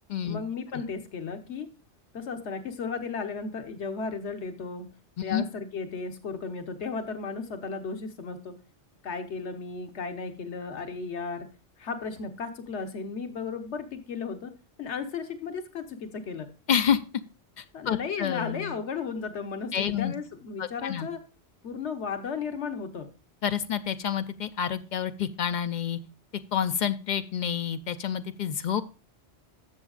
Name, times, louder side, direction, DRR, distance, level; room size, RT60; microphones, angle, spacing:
voice 1, 0.2-1.7 2.1-4.9 5.2-8.5 9.0-11.5 11.8-14.5 14.8-16.5 17.7-21.2 21.6-23.1, left 5 dB, 90° left, 7 dB, 1.3 m, -35 dB
voice 2, 16.7-17.0 17.6-18.7 19.7-20.1 20.6-21.1 23.4-26.0 26.5-28.8, left 8 dB, 55° left, 11 dB, 0.6 m, -28 dB
12.5 x 7.1 x 2.4 m, 0.31 s
omnidirectional pair, 1.1 m